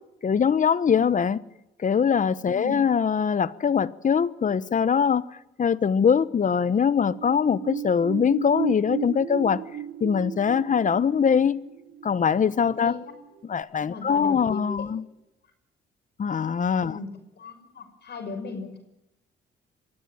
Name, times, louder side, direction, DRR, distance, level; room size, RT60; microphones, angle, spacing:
voice 1, 0.2-1.4 1.8-5.3 5.6-9.6 10.0-11.6 12.0-12.9 13.4-15.0 16.2-17.0, left 7 dB, 40° left, 1.0 m, -22 dB
sound 1, 6.9-13.2 13.6-13.7, right 9 dB, 45° right, 1.3 m, -35 dB
voice 2, 13.8-14.6 16.8-17.1 17.4-18.8, left 4 dB, 55° left, 5.9 m, -37 dB
24.5 x 15.5 x 9.3 m
cardioid pair, 90°, 20 cm